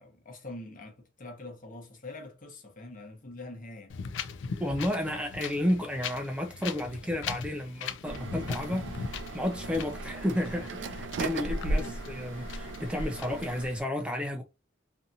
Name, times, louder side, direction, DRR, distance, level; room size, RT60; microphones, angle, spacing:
voice 1, 0.0-3.9 11.7-12.0, left 2 dB, 45° left, 0.9 m, -44 dB
Wind, 3.9-13.8, left 6 dB, 75° left, 0.4 m, -40 dB
voice 2, 4.6-14.4, left 1 dB, 5° right, 0.3 m, -32 dB
sound 1, 8.0-13.7, right 2 dB, 75° right, 0.4 m, -36 dB
2.7 x 2.4 x 2.6 m
head